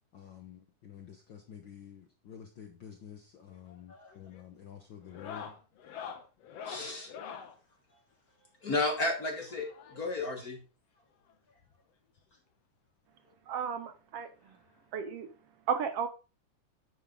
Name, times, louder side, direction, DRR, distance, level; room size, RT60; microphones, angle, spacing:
voice 1, 0.1-5.5, left 8 dB, 75° left, 1.0 m, -49 dB
sound 1, 3.5-3.8 4.1-4.5 5.0-7.6 8.9-10.3 11.3-11.4 11.6-11.7 12.2-12.3 13.6-13.7 15.0-15.1, left 7 dB, 60° left, 2.0 m, -46 dB
voice 2, 6.6-7.1 8.6-9.7 9.9-10.6, left 2 dB, 45° left, 1.3 m, -33 dB
voice 3, 13.5-14.3 14.9-15.3 15.7-16.1, right 7 dB, 70° right, 1.5 m, -33 dB
10.0 x 8.2 x 3.7 m
omnidirectional pair, 3.6 m